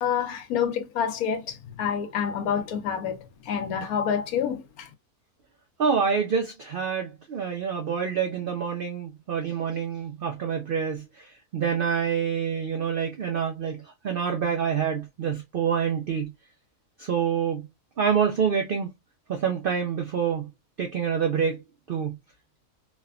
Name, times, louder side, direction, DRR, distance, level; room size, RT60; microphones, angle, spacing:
voice 1, 0.0-4.9, left 8 dB, 75° left, 1.1 m, -28 dB
voice 2, 5.8-16.3 17.0-17.7 18.0-18.9 19.3-20.5 20.8-21.6 21.9-22.2, right 7 dB, 90° right, 0.4 m, -27 dB
3.2 x 2.1 x 2.2 m
omnidirectional pair, 1.6 m